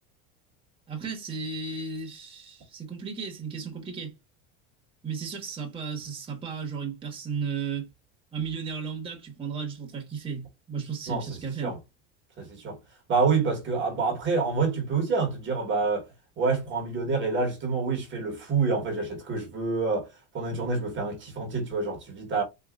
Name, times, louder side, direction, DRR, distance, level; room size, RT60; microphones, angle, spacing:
voice 1, 0.9-4.1 5.0-7.9 8.3-11.8, right 5 dB, 15° right, 1.2 m, -34 dB
voice 2, 12.4-12.8 13.1-16.0 16.4-20.1 20.3-22.4, right 4 dB, 40° right, 1.2 m, -27 dB
3.8 x 2.6 x 2.3 m
cardioid pair, 140°, 31 cm